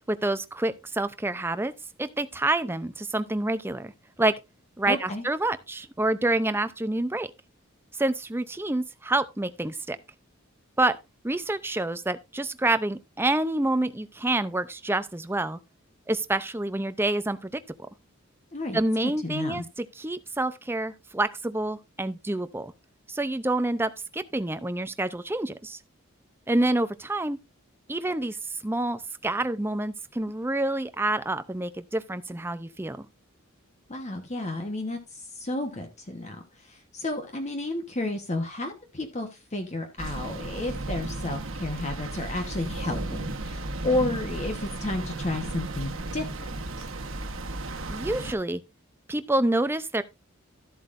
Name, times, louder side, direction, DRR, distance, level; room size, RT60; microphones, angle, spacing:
voice 1, 0.0-1.7 2.0-3.9 4.2-4.3 4.8-7.3 7.9-10.0 10.8-11.0 11.2-15.6 16.1-17.5 17.8-17.9 18.7-22.7 23.1-25.8 26.5-27.4 27.9-28.4 28.6-33.1 47.9-48.6 49.1-50.0, right 2 dB, 10° right, 0.5 m, -27 dB
voice 2, 4.9-5.2 18.5-18.8 19.2-19.6 33.9-46.5 46.8-46.9, left 2 dB, 35° left, 1.2 m, -32 dB
sound 1, 40.0-48.3, right 2 dB, 70° right, 1.3 m, -34 dB
13.0 x 7.9 x 2.6 m
head